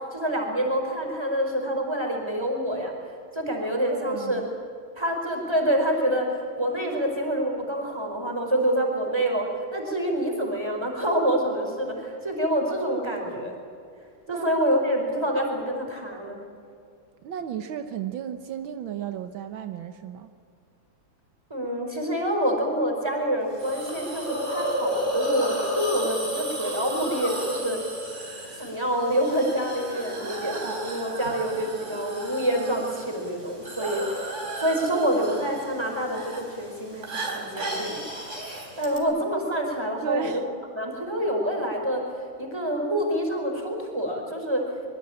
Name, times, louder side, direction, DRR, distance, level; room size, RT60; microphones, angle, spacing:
voice 1, 0.1-2.9 3.3-4.4 5.0-13.5 14.3-16.4 21.5-27.8 28.6-34.0 34.6-38.0 38.8-40.4 40.7-42.0 42.4-44.6, equal, 10° right, 2 dB, 4.7 m, -27 dB
voice 2, 3.9-4.5 14.3-14.5 17.2-20.3 40.0-40.5, right 9 dB, 80° right, 8 dB, 1.8 m, -33 dB
Hiss, 23.6-39.0, right 1 dB, 35° right, 4.4 m, -33 dB
24.5 x 22.5 x 8.9 m, 2.4 s
omnidirectional pair, 2.2 m